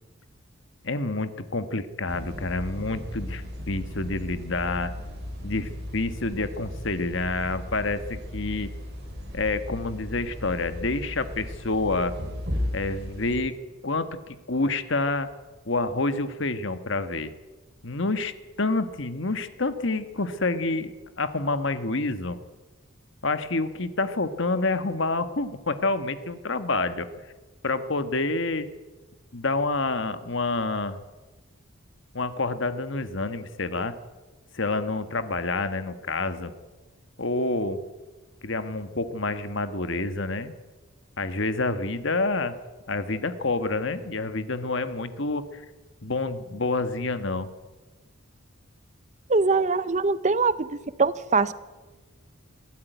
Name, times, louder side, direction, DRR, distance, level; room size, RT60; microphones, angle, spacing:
voice 1, 0.8-4.9 5.4-8.7 9.3-12.1 12.7-13.6 13.8-15.3 15.7-17.3 17.8-22.4 23.2-27.1 27.6-28.7 29.3-31.0 32.1-33.9 34.5-36.5 37.2-37.8 38.4-40.5 41.2-42.5 42.9-45.6 46.0-47.5, left 3 dB, 55° left, 11 dB, 1.4 m, -28 dB
sound 1, 2.1-13.4, left 1 dB, 50° right, 5.8 m, -36 dB
voice 2, 49.3-51.5, right 4 dB, 35° right, 16 dB, 0.6 m, -23 dB
21.5 x 14.5 x 9.4 m, 1.3 s
head